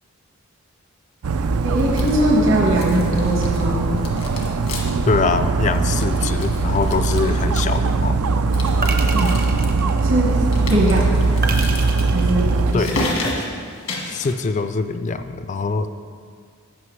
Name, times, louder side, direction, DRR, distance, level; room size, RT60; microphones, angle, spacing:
Dog, 1.2-12.7, right 3 dB, 85° right, 0.4 m, -20 dB
voice 1, 1.6-4.0 9.1-9.4 10.0-10.3 10.7-11.1 12.1-13.0, right 1 dB, 60° right, -2 dB, 1.2 m, -20 dB
sound 1, 1.7-2.4 2.7-3.7 4.0-5.1 5.4-5.5 5.7-7.9 8.4-9.7 10.5-14.3, left 2 dB, 90° left, 1.5 m, -32 dB
voice 2, 5.1-8.1 12.7-13.0 14.1-15.9, left 4 dB, 35° left, 11 dB, 0.3 m, -23 dB
sound 2, 7.3-7.9 8.8-10.5 11.4-13.2, right 3 dB, 40° right, 0.7 m, -30 dB
15.5 x 5.7 x 3.2 m, 2.1 s
head